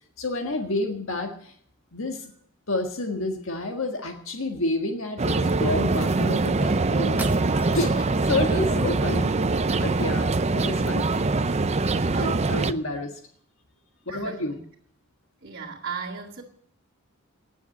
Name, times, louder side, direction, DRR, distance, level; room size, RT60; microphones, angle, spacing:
voice 1, 0.2-1.5 1.9-2.3 2.7-7.3 7.6-9.3 9.7-11.1 12.1-13.1 14.1-14.6, left 2 dB, 65° left, 4 dB, 1.7 m, -29 dB
sound 1, 5.2-12.7, right 3 dB, 30° right, 0.5 m, -23 dB
sound 2, 7.2-8.1, right 2 dB, 10° right, 1.1 m, -39 dB
voice 2, 9.7-10.4 12.1-12.7 14.1-14.6 15.4-16.4, right 5 dB, 45° right, -5 dB, 2.1 m, -37 dB
18.5 x 7.3 x 8.4 m, 0.64 s
head